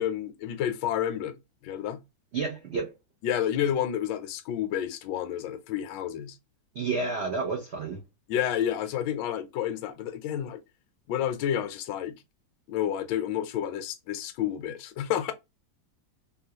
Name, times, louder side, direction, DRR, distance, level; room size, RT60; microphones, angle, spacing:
voice 1, 0.0-1.4 1.6-2.0 3.2-6.4 8.3-10.6 11.1-12.2 12.7-15.3, left 10 dB, 75° left, 1.2 m, -30 dB
voice 2, 2.3-2.9 6.7-8.0, right 4 dB, 80° right, 0.5 m, -30 dB
3.5 x 2.2 x 2.7 m
omnidirectional pair, 2.1 m